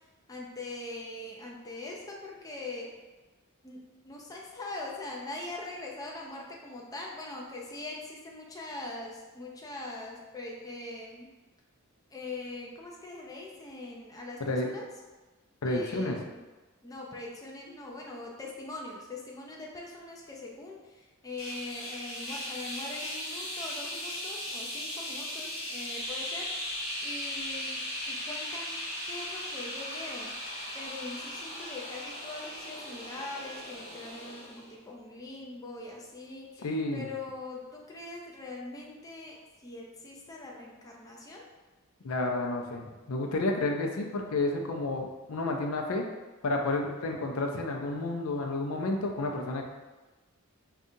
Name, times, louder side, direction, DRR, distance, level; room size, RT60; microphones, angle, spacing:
voice 1, 0.3-2.9 3.6-11.3 12.1-14.9 15.7-16.4 16.8-30.3 30.7-41.4, left 2 dB, 15° left, -2 dB, 0.4 m, -42 dB
voice 2, 15.6-16.2 36.6-37.0 42.0-46.0 46.4-49.6, left 2 dB, 80° left, 2 dB, 0.5 m, -30 dB
sound 1, 21.4-34.7, left 1 dB, 50° left, 1.3 m, -38 dB
5.1 x 2.4 x 2.6 m, 1.2 s
head